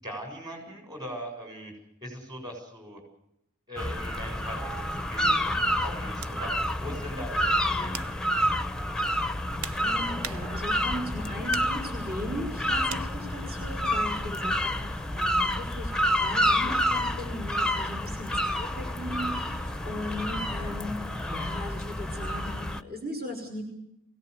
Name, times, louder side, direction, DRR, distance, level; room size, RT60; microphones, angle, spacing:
voice 1, 0.0-1.7 2.0-3.0 3.7-5.5 5.8-6.5 6.8-7.4 7.7-8.2, equal, 20° right, 3 dB, 7.4 m, -40 dB
sound 1, 3.8-22.8, equal, 5° left, 0.8 m, -29 dB
sound 2, 6.2-6.4 7.1-7.3 7.9-8.3 9.1-10.8 11.5-11.8 12.9-13.1, right 8 dB, 80° right, 0.9 m, -40 dB
voice 2, 9.8-23.6, left 1 dB, 45° right, 2 dB, 5.6 m, -38 dB
24.5 x 18.0 x 8.3 m, 0.78 s
head